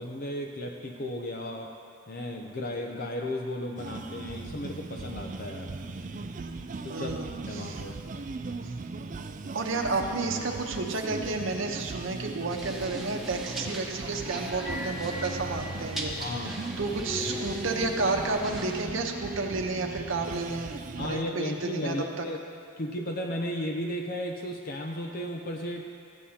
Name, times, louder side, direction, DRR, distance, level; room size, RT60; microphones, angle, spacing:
voice 1, 0.0-1.7 2.1-5.7 6.8-7.2 7.5-8.0 16.2-16.6 21.0-22.4 22.8-25.9, left 1 dB, 45° left, 1 dB, 0.6 m, -34 dB
sound 1, 3.8-21.2, right 3 dB, 40° right, 0.4 m, -38 dB
voice 2, 6.9-7.3 7.5-7.8 9.5-20.7 21.0-22.2, right 3 dB, 70° right, 2 dB, 0.9 m, -31 dB
sound 2, 12.5-18.9, equal, ahead, 1.0 m, -39 dB
15.0 x 9.4 x 2.9 m, 2.4 s
head